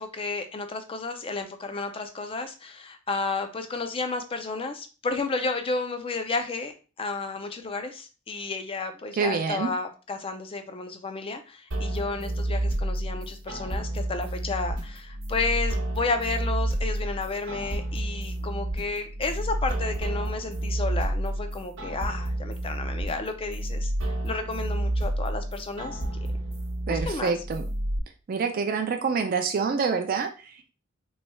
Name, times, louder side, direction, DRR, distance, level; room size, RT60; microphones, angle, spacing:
voice 1, 0.0-26.0 26.9-27.3, left 3 dB, 25° left, 8 dB, 0.4 m, -32 dB
voice 2, 9.1-9.7 26.9-27.6 28.3-30.7, right 5 dB, 45° right, 6 dB, 0.4 m, -27 dB
sound 1, 11.7-28.0, right 1 dB, 65° right, 1.0 m, -30 dB
4.1 x 3.1 x 2.2 m, 0.34 s
head